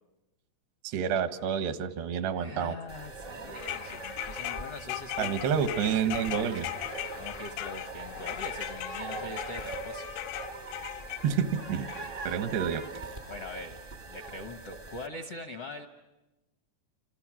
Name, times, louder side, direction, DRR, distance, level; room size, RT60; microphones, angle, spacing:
voice 1, 0.8-2.7 5.2-6.7 11.2-11.9 12.2-12.8, right 7 dB, 80° right, 9 dB, 3.3 m, -29 dB
voice 2, 2.3-6.5 7.2-10.1 13.3-13.8 14.1-15.9, left 2 dB, 70° left, 5 dB, 1.4 m, -43 dB
sound 1, 2.9-15.1, right 3 dB, 55° right, 0.6 m, -42 dB
sound 2, 3.5-11.2 11.9-12.0, left 15 dB, 90° left, 3.3 m, -38 dB
Speech, 8.3-13.4, left 3 dB, 45° left, 0.7 m, -50 dB
28.0 x 27.5 x 6.2 m, 1.0 s
omnidirectional pair, 4.8 m